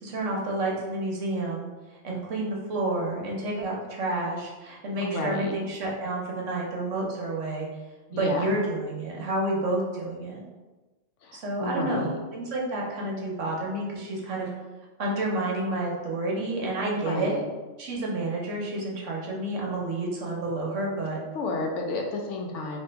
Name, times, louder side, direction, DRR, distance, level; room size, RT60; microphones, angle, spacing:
voice 1, 0.0-1.7 2.0-7.7 8.1-10.4 11.3-14.5 15.0-17.4 17.8-21.2, right 2 dB, 70° right, -2 dB, 1.2 m, -29 dB
voice 2, 4.9-5.5 8.1-8.6 11.2-12.2 16.8-17.4 21.3-22.8, left 2 dB, 70° left, 2 dB, 0.9 m, -31 dB
3.0 x 3.0 x 3.3 m, 1.2 s
omnidirectional pair, 1.3 m